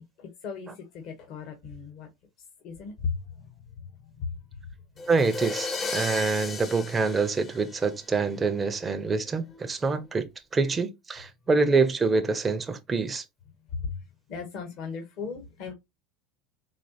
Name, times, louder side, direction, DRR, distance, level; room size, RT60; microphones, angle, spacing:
voice 1, 0.0-2.1 2.4-5.1 8.8-8.9 9.5-10.1 11.4-11.5 13.6-15.7, left 5 dB, 50° left, 1.0 m, -38 dB
sound 1, 5.0-8.2, left 4 dB, 25° left, 0.6 m, -35 dB
voice 2, 5.1-13.2, right 4 dB, 15° right, 0.5 m, -26 dB
4.1 x 2.8 x 2.7 m
supercardioid pair, 135°, 0 cm